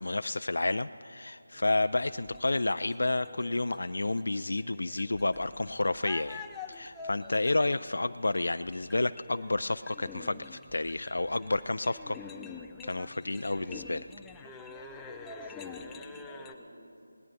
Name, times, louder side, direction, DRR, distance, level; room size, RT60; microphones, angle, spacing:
voice 1, 0.0-6.4 6.7-12.2 12.8-14.1, left 2 dB, 75° left, 11 dB, 0.3 m, -30 dB
sound 1, 1.5-16.5, left 4 dB, 5° left, 0.4 m, -47 dB
voice 2, 15.3-17.1, equal, 25° right, -1 dB, 2.5 m, -51 dB
19.5 x 18.5 x 2.6 m, 2.5 s
figure-of-eight pair, 165°, 0 cm